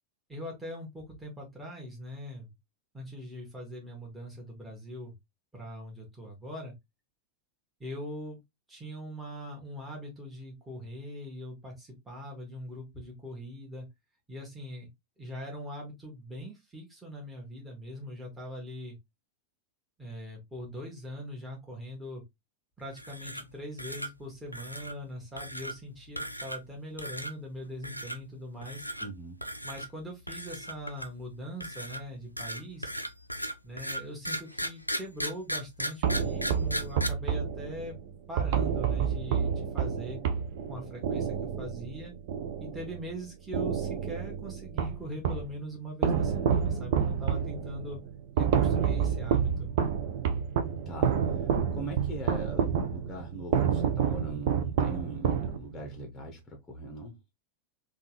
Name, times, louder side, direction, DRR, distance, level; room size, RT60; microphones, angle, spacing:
voice 1, 0.3-2.5 2.9-5.1 5.5-6.7 7.8-8.4 8.7-13.9 14.3-14.9 15.2-19.0 20.0-22.2 22.8-28.8 29.6-32.9 33.6-37.9 38.3-40.2 40.7-42.1 42.6-48.0 48.4-49.7, equal, 10° right, 1.4 m, -41 dB
sound 1, 22.9-23.5 23.8-24.1 24.5-25.0 25.4-25.7 26.2-26.7 27.0-27.3 27.8-28.2 28.6-29.1 29.4-29.9 30.3-31.2 31.6-37.1, equal, 90° left, 0.4 m, -36 dB
voice 2, 29.0-29.4 50.9-57.2, right 2 dB, 10° left, 0.9 m, -41 dB
sound 2, 36.0-43.1 43.5-45.5 46.0-55.9, right 7 dB, 50° right, 0.5 m, -29 dB
3.6 x 2.4 x 3.0 m
figure-of-eight pair, 90°, 0 cm